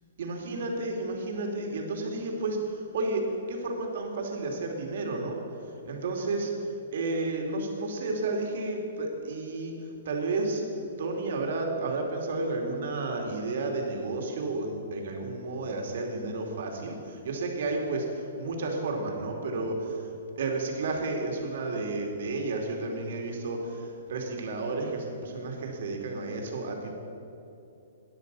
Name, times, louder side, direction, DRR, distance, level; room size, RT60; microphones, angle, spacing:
voice 1, 0.2-6.5 6.9-10.6 11.0-20.1 20.4-26.9, right 2 dB, 60° right, 1 dB, 2.5 m, -32 dB
13.0 x 10.0 x 6.8 m, 2.8 s
hypercardioid pair, 170°, 0 cm